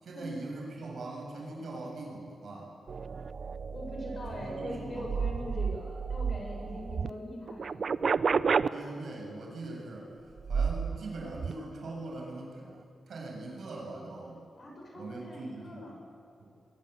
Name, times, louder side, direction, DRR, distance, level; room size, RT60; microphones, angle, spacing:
voice 1, 0.0-2.7 4.3-5.3 8.7-10.1 10.5-12.7 13.1-14.4 14.9-15.8 16.4-16.5, right 2 dB, 70° right, -1 dB, 7.6 m, -41 dB
sound 1, 2.9-7.1 7.5-8.7 10.4-11.0 11.3-11.5, right 5 dB, 55° right, 0.6 m, -31 dB
voice 2, 3.7-7.8 14.6-16.0, left 1 dB, 40° left, 0 dB, 7.1 m, -42 dB
22.5 x 22.0 x 8.4 m, 2.5 s
wide cardioid pair, 110°, 0 cm